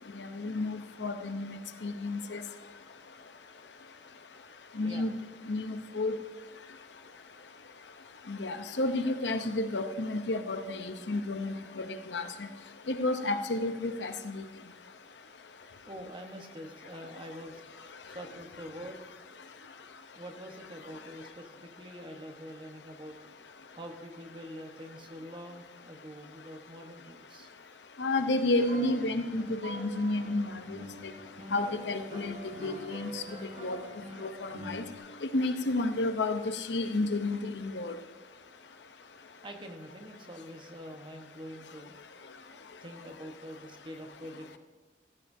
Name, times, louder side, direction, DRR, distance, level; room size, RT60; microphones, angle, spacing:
voice 1, 0.2-2.4 4.8-5.1 5.5-6.2 8.3-12.3 12.9-14.4 28.0-30.5 31.5-33.2 33.6-33.8 34.2-34.8 35.3-37.9, left 2 dB, 85° left, 8 dB, 0.9 m, -31 dB
voice 2, 15.9-17.6 18.0-19.0 20.1-23.2 23.8-27.5 39.4-41.9 42.5-44.6, equal, 30° right, 4 dB, 1.2 m, -45 dB
sound 1, 28.6-35.0, right 1 dB, 45° right, 3.7 m, -45 dB
16.0 x 14.5 x 2.7 m, 1.3 s
head